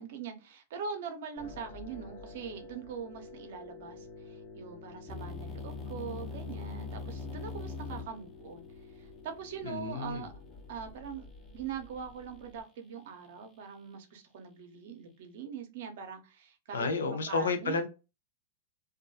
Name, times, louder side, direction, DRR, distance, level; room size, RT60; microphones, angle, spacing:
voice 1, 0.0-8.6 8.9-10.3 10.7-11.3 11.5-16.9 17.3-17.8, right 7 dB, 65° right, 0.6 m, -42 dB
sound 1, 1.4-12.6, left 4 dB, 40° left, 1.1 m, -50 dB
sound 2, 5.1-11.0, left 4 dB, 10° left, 0.7 m, -43 dB
voice 2, 9.6-10.3 16.7-17.9, left 4 dB, 85° left, 0.5 m, -31 dB
2.2 x 2.1 x 2.6 m
hypercardioid pair, 115°, 0 cm